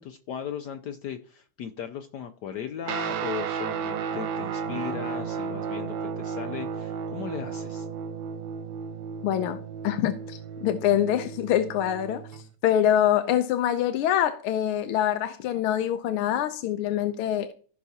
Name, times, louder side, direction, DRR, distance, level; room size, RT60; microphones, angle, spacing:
voice 1, 0.0-7.9, left 9 dB, 70° left, 1.0 m, -37 dB
Guitar, 2.8-12.5, right 6 dB, 70° right, 1.4 m, -33 dB
voice 2, 9.2-17.5, left 11 dB, 85° left, 1.5 m, -25 dB
15.5 x 5.7 x 2.8 m
omnidirectional pair, 2.3 m